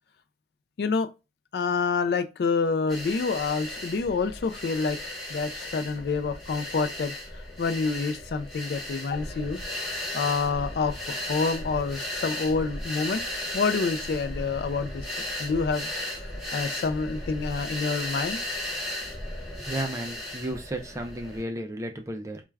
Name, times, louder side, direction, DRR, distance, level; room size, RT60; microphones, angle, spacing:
voice 1, 1.5-5.0 5.3-7.1 7.6-9.6 10.1-13.2 13.5-15.0 15.4-15.9 16.5-18.4, left 4 dB, 65° left, 0.3 m, -27 dB
sound 1, 2.9-21.4, left 1 dB, ahead, 0.8 m, -35 dB
voice 2, 19.6-22.4, right 1 dB, 15° right, 0.3 m, -33 dB
2.3 x 2.2 x 3.2 m
head